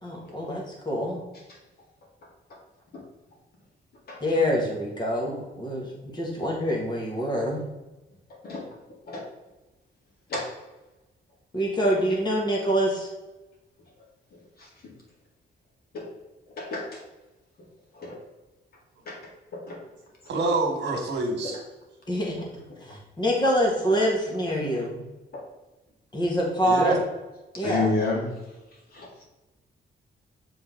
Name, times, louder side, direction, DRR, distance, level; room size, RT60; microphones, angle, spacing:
voice 1, 0.0-1.2 4.2-7.6 11.5-13.1 22.1-22.3 22.8-25.0 26.1-27.0 27.6-27.9, equal, 25° left, -2 dB, 1.5 m, -25 dB
voice 2, 14.6-14.9 15.9-16.1 16.5-17.0 17.9-18.2 19.1-19.2 19.5-19.8 25.3-25.4 27.6-28.3 28.9-29.2, left 3 dB, 55° left, -2 dB, 2.1 m, -31 dB
voice 3, 20.2-21.6 26.6-27.0, right 2 dB, 65° right, 2 dB, 1.6 m, -26 dB
7.6 x 3.9 x 3.8 m, 1.1 s
wide cardioid pair, 160°, 19 cm